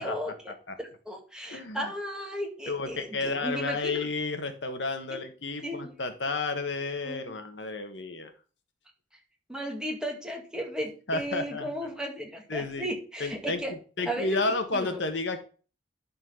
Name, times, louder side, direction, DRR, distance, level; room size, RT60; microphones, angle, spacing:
voice 1, 0.0-0.5 0.8-4.0 5.1-5.2 5.6-5.9 7.0-7.3 9.5-13.7 14.1-14.4 14.7-15.0, equal, 5° right, 0 dB, 2.1 m, -35 dB
voice 2, 1.5-1.9 2.7-8.3 11.1-11.9 12.5-12.9 13.2-15.4, left 3 dB, 85° left, 7 dB, 1.5 m, -32 dB
11.0 x 4.4 x 5.6 m, 0.38 s
head